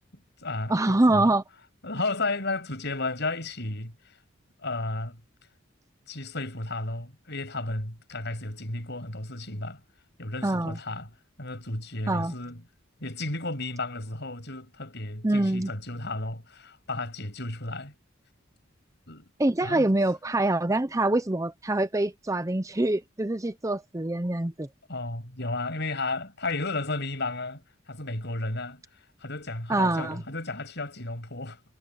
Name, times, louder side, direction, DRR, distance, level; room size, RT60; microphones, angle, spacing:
voice 1, 0.1-1.3 1.8-4.2 4.6-5.2 6.1-9.8 10.2-11.1 11.4-12.6 13.0-17.9 19.1-19.3 19.6-19.9 24.9-27.6 27.9-31.6, left 2 dB, 55° left, 7.2 m, -33 dB
voice 2, 0.7-1.4 10.4-10.8 12.1-12.3 15.2-15.7 19.4-24.7 29.7-30.2, right 2 dB, 15° right, 0.7 m, -25 dB
head